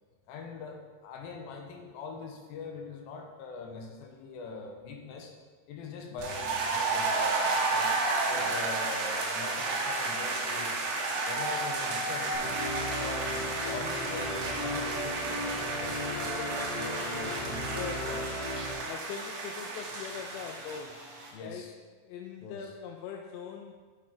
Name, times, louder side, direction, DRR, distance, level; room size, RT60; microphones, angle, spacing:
voice 1, 0.3-5.3 5.7-7.9 8.3-10.7 11.1-12.6 13.0-18.3 21.3-21.7 22.4-22.7, left 4 dB, 75° left, 2 dB, 2.4 m, -42 dB
sound 1, 6.2-20.8, right 3 dB, 75° right, 3.2 m, -32 dB
sound 2, 6.8-21.3, right 1 dB, 55° right, 3.3 m, -47 dB
Musical instrument, 12.3-18.7, left 1 dB, 40° left, 2.4 m, -36 dB
voice 2, 16.3-16.7 17.8-18.1 18.8-21.0 21.3-21.7 22.0-23.7, left 7 dB, 90° left, 2 dB, 2.8 m, -41 dB
7.6 x 7.2 x 4.4 m, 1.4 s
omnidirectional pair, 4.9 m